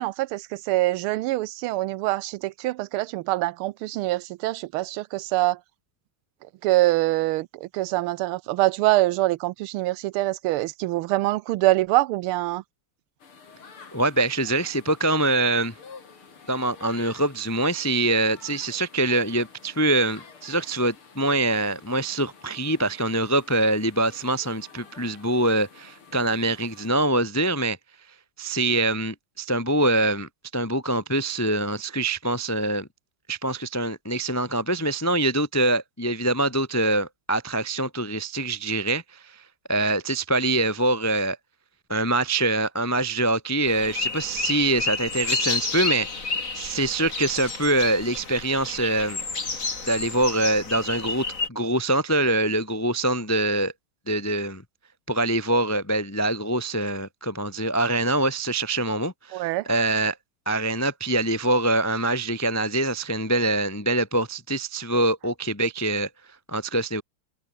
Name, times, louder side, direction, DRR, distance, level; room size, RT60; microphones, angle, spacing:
voice 1, 0.0-5.6 6.4-12.6 59.3-59.7, right 17 dB, 85° right, 1.5 m, -24 dB
sound 1, 13.2-26.9, left 5 dB, 80° left, 4.1 m, -49 dB
voice 2, 13.9-15.7 16.5-27.8 28.4-32.9 33.3-39.4 39.7-41.4 41.9-46.1 46.5-49.2 49.9-53.7 54.1-54.6 55.1-60.2 60.5-66.1 66.5-67.0, right 2 dB, 15° left, 0.5 m, -24 dB
sound 2, 43.7-51.5, left 4 dB, 40° left, 3.1 m, -30 dB
omnidirectional pair, 2.3 m